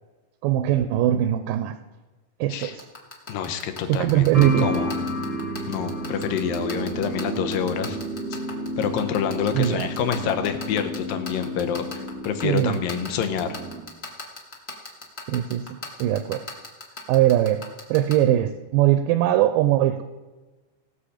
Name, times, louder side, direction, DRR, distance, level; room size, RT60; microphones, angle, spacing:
voice 1, 0.4-1.8 2.4-2.8 3.9-4.7 9.5-9.9 12.4-12.8 15.3-16.4 17.1-17.6 17.9-20.0, right 12 dB, 80° right, 10 dB, 2.1 m, -21 dB
sound 1, 2.6-18.1, left 3 dB, 35° left, 0.9 m, -36 dB
voice 2, 3.3-5.0 5.7-8.0 8.3-8.4 8.8-13.6, left 8 dB, 85° left, 7 dB, 2.6 m, -27 dB
sound 2, 4.3-13.8, equal, 30° right, 1.0 m, -31 dB
18.0 x 7.1 x 5.0 m, 1.2 s
omnidirectional pair, 4.1 m